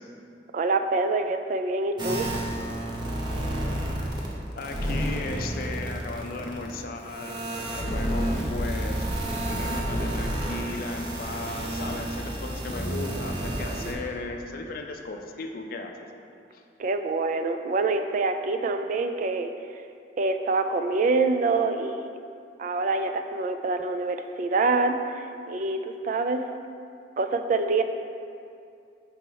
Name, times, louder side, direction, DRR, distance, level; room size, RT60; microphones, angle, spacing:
voice 1, 0.5-2.3 16.8-19.5 20.2-22.0 22.6-26.4 27.2-27.8, right 3 dB, 45° right, 7 dB, 0.3 m, -26 dB
sound 1, 2.0-4.3 4.6-13.9, right 1 dB, 25° right, 0.7 m, -30 dB
voice 2, 4.6-7.3 7.7-9.1 9.5-16.1 16.5-16.6, left 3 dB, 55° left, 3 dB, 0.4 m, -36 dB
4.2 x 4.1 x 5.5 m, 2.5 s
head